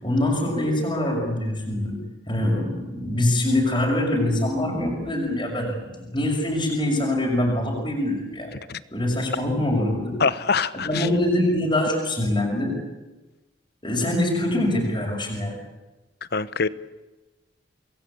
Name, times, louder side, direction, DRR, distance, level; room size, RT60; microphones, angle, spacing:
voice 1, 0.0-2.0 2.3-8.5 8.9-10.2 10.8-12.8 13.8-15.6, left 1 dB, 25° left, -1 dB, 6.2 m, -24 dB
voice 2, 10.2-11.1 16.3-16.7, left 5 dB, 60° left, 15 dB, 1.0 m, -24 dB
27.0 x 21.0 x 8.7 m, 1.1 s
head